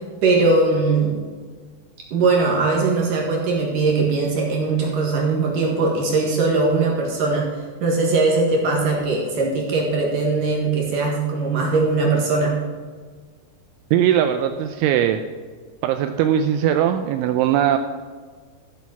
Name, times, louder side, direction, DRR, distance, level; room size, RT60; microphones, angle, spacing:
voice 1, 0.2-1.2 2.1-7.5 7.8-12.5, right 3 dB, 55° right, -2 dB, 2.6 m, -20 dB
voice 2, 13.9-15.2 15.8-17.8, right 10 dB, 85° right, 7 dB, 2.8 m, -19 dB
14.0 x 7.3 x 5.9 m, 1.5 s
omnidirectional pair, 5.8 m